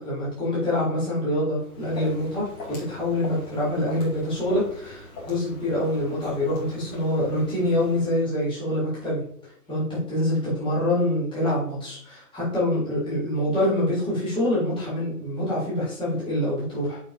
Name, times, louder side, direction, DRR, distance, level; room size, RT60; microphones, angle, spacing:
voice 1, 0.0-9.2 9.7-17.0, left 1 dB, 10° left, -9 dB, 3.6 m, -25 dB
Walk footsteps, 1.6-8.2, left 2 dB, 30° left, 3.5 m, -41 dB
10.5 x 5.6 x 2.8 m, 0.65 s
figure-of-eight pair, 120°, 46 cm